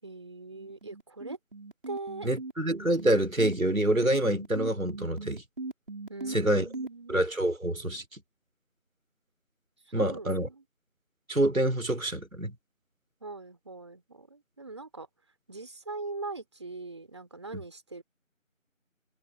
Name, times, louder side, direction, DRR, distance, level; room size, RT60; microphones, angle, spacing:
voice 1, 0.0-1.4 1.9-2.3 6.1-7.3 9.9-10.6 13.2-15.1 15.5-18.0, right 3 dB, 20° right, 4.5 m, -41 dB
sound 1, 0.5-6.9, right 3 dB, 40° right, 7.1 m, -39 dB
voice 2, 2.2-5.4 6.3-6.7 7.1-8.0 9.9-10.5 11.3-12.5, right 1 dB, 85° right, 5.2 m, -26 dB
figure-of-eight pair, 175°, 41 cm